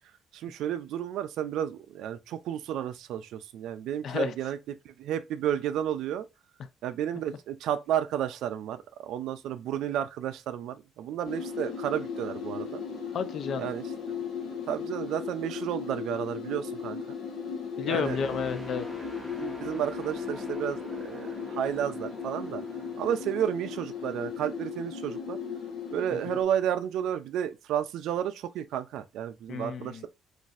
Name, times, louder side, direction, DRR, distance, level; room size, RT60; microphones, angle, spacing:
voice 1, 0.3-4.6 4.8-6.3 6.8-12.8 13.6-13.8 14.7-17.0 17.8-18.2 19.4-22.6 23.0-25.4 25.9-30.1, right 10 dB, 80° right, 0.3 m, -32 dB
voice 2, 4.0-4.3 13.1-13.7 17.8-18.9 29.5-30.1, left 6 dB, 50° left, 0.5 m, -31 dB
sound 1, 11.2-26.4, left 6 dB, 70° left, 1.2 m, -37 dB
sound 2, 18.0-25.8 26.3-26.5, equal, 5° left, 0.9 m, -45 dB
4.0 x 2.5 x 2.5 m
cardioid pair, 145°, 0 cm